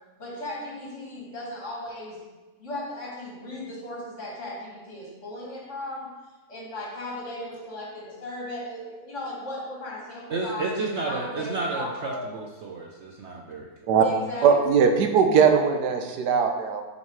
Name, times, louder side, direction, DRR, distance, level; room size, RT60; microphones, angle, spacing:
voice 1, 0.2-2.2 2.6-6.1 6.5-10.7 11.1-12.3 14.0-14.5, left 1 dB, 45° left, -4 dB, 2.4 m, -36 dB
voice 2, 10.3-13.7, right 3 dB, 55° right, 0 dB, 0.9 m, -31 dB
voice 3, 14.4-16.8, right 6 dB, 90° right, 5 dB, 1.4 m, -20 dB
7.4 x 5.6 x 4.8 m, 1.2 s
omnidirectional pair, 1.7 m